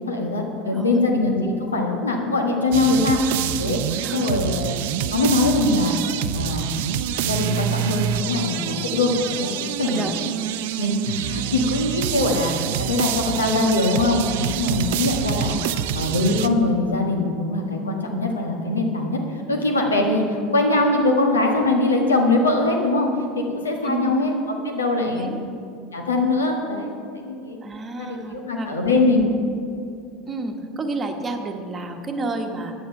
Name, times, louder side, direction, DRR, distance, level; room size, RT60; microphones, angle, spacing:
voice 1, 0.1-3.8 4.1-4.7 5.1-5.9 6.3-6.7 7.3-10.0 10.8-23.1 23.3-24.3 24.6-25.5 25.9-27.6 28.0-29.3, left 2 dB, 80° left, 2 dB, 1.4 m, -22 dB
voice 2, 0.7-1.0 4.0-4.5 9.9-10.2 11.4-11.5 14.8-15.0 23.8-24.2 25.0-25.4 27.6-29.0 30.2-32.7, right 2 dB, 25° right, 5 dB, 1.2 m, -31 dB
sound 1, 2.7-16.5, right 10 dB, 60° right, 0.4 m, -26 dB
9.4 x 9.2 x 5.7 m, 2.5 s
figure-of-eight pair, 75°, 0 cm